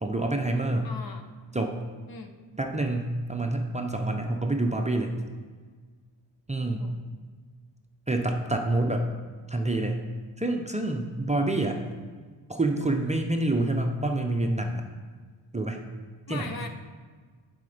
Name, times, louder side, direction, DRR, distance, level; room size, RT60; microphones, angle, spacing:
voice 1, 0.0-0.9 1.5-1.8 2.6-5.1 6.5-6.9 8.1-9.1 9.5-10.0 10.4-11.8 12.5-14.8 15.5-15.8 16.3-16.7, right 2 dB, 15° right, 2 dB, 0.5 m, -27 dB
voice 2, 0.8-1.3 2.1-2.3 6.8-7.1 16.3-16.7, left 4 dB, 50° left, 6 dB, 0.8 m, -39 dB
11.0 x 4.3 x 5.0 m, 1.5 s
wide cardioid pair, 125°, 45 cm